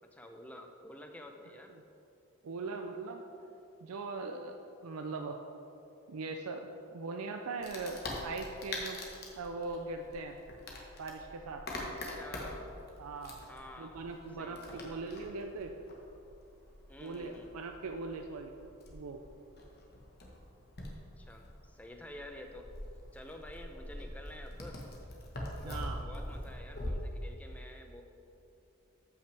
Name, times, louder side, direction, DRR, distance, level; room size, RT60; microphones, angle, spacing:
voice 1, 0.0-1.7 11.8-12.8 13.5-14.9 16.9-17.5 21.2-22.7 23.1-24.8 25.6-28.0, left 1 dB, 5° left, 3 dB, 0.5 m, -50 dB
voice 2, 2.4-3.2 3.8-4.6 4.8-5.4 6.1-9.0 9.4-10.4 11.0-11.6 13.0-13.4 13.8-15.7 17.0-18.5 18.9-19.2 25.6-26.0, right 3 dB, 90° right, 4 dB, 0.5 m, -40 dB
Wood, 7.6-26.9, left 1 dB, 45° left, 1.3 m, -45 dB
13.0 x 5.7 x 3.4 m, 2.9 s
head